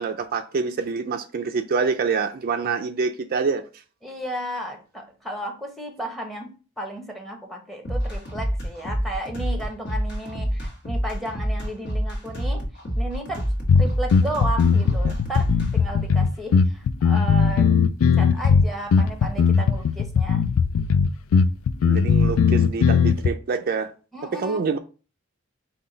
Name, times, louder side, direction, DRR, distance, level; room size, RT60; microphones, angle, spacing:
voice 1, 0.0-3.6 21.8-23.9 24.3-24.8, right 5 dB, 45° right, 0.4 m, -26 dB
voice 2, 4.0-6.5 6.8-12.6 12.9-13.4 13.7-15.5 15.7-17.7 18.2-20.4 24.1-24.7, right 1 dB, ahead, 0.9 m, -33 dB
sound 1, 7.8-15.7, equal, 50° left, 1.5 m, -27 dB
sound 2, 13.7-23.3, left 6 dB, 75° left, 0.3 m, -19 dB
5.6 x 2.3 x 3.8 m
head